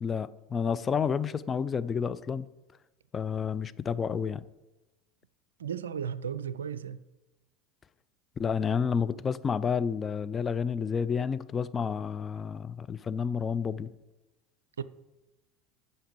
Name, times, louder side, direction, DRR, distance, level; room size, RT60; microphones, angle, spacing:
voice 1, 0.0-2.5 3.1-4.4 8.4-13.9, left 6 dB, 25° left, 0.4 m, -30 dB
voice 2, 5.6-7.0 14.8-14.9, right 8 dB, 75° right, 0.4 m, -34 dB
9.2 x 5.5 x 6.7 m
figure-of-eight pair, 70°, 0 cm